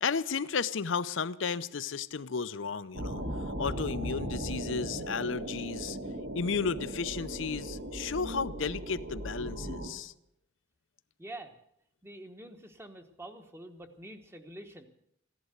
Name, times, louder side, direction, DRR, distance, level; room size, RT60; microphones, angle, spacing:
voice 1, 0.0-3.2 3.6-6.0 6.3-10.1, left 5 dB, 75° left, 0.6 m, -33 dB
sound 1, 2.9-9.9, right 1 dB, 65° right, 2.1 m, -37 dB
voice 2, 11.2-11.6 12.0-14.9, right 1 dB, 10° right, 1.1 m, -46 dB
15.0 x 11.0 x 7.9 m
head